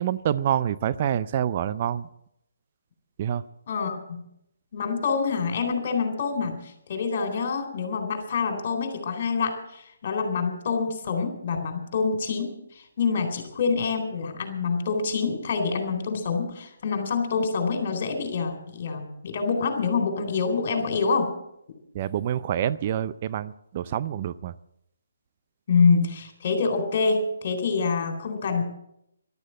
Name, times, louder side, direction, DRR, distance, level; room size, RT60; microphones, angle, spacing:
voice 1, 0.0-2.1 3.2-3.4 21.9-24.5, right 10 dB, 35° right, 14 dB, 0.5 m, -27 dB
voice 2, 3.7-4.2 4.7-21.3 25.7-28.6, left 5 dB, 45° left, 6 dB, 3.9 m, -26 dB
14.0 x 12.0 x 7.6 m, 0.79 s
figure-of-eight pair, 145°, 0 cm